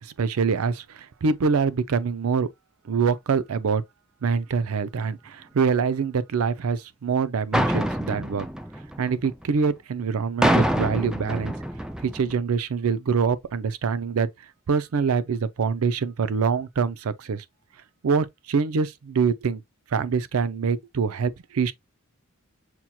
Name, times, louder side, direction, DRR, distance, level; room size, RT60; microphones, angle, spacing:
voice 1, 0.0-2.5 2.8-3.8 4.2-8.5 9.0-11.5 12.0-14.3 14.7-17.4 18.0-19.6 19.9-21.7, right 5 dB, 85° right, 0.5 m, -25 dB
sound 1, 7.5-9.5 10.4-12.3, equal, 5° right, 0.3 m, -25 dB
5.9 x 2.8 x 2.2 m
head